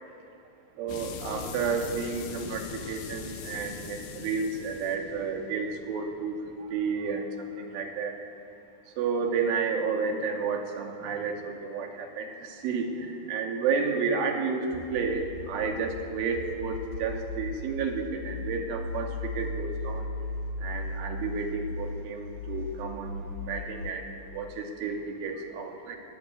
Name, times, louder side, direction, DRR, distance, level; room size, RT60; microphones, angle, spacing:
voice 1, 0.8-8.2 9.0-20.1 20.6-26.0, right 5 dB, 85° right, 2 dB, 4.7 m, -31 dB
sound 1, 0.9-7.4, left 5 dB, 85° left, 4.1 m, -41 dB
sound 2, 14.7-23.9, left 2 dB, 55° left, 3.5 m, -37 dB
22.0 x 22.0 x 9.2 m, 2.8 s
omnidirectional pair, 5.4 m